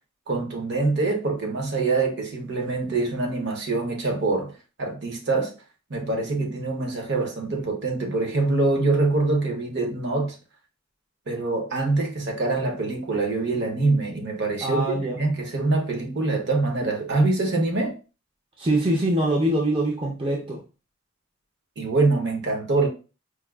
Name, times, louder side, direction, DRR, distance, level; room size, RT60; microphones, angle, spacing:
voice 1, 0.3-4.5 4.8-5.5 5.9-10.4 11.3-17.9 21.8-22.9, right 3 dB, 55° right, 0.8 m, -24 dB
voice 2, 14.6-15.2 18.6-20.6, right 1 dB, 25° right, 0.5 m, -23 dB
4.6 x 2.3 x 2.3 m
head